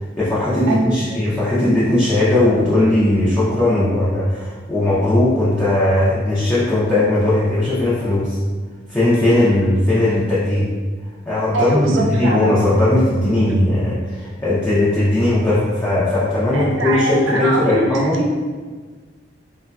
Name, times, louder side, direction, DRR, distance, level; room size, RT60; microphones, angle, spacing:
voice 1, 0.2-8.4 8.9-10.7 11.2-18.2, left 1 dB, 10° left, -11 dB, 0.5 m, -18 dB
voice 2, 0.7-1.2 11.5-12.6 16.5-18.3, right 2 dB, 85° right, -1 dB, 0.5 m, -22 dB
3.0 x 2.2 x 2.3 m, 1.4 s
head